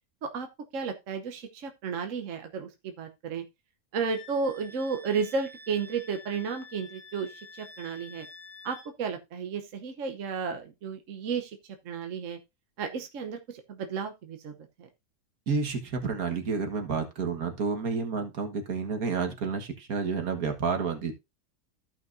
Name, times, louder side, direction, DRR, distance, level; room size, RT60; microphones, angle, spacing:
voice 1, 0.2-3.4 3.9-8.3 8.6-11.6 11.8-12.4 12.8-14.5 14.8-14.9, right 5 dB, 60° right, 1.3 m, -33 dB
Wind instrument woodwind instrument, 4.1-8.9, left 2 dB, 25° left, 3.0 m, -49 dB
voice 2, 15.5-21.1, right 5 dB, 80° right, 2.0 m, -30 dB
14.5 x 5.8 x 2.6 m
omnidirectional pair, 1.5 m